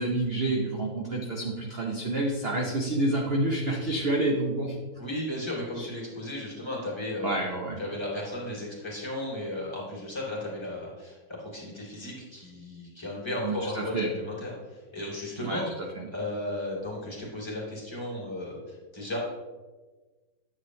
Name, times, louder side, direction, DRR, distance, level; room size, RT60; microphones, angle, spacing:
voice 1, 0.0-4.7 5.8-5.9 7.2-7.8 13.4-14.1 15.4-15.6 16.0-16.1, right 2 dB, 45° right, 0 dB, 0.9 m, -28 dB
voice 2, 5.0-7.3 7.8-15.7 16.1-19.2, left 1 dB, 15° left, -5 dB, 2.8 m, -35 dB
9.7 x 7.4 x 3.2 m, 1.3 s
omnidirectional pair, 2.0 m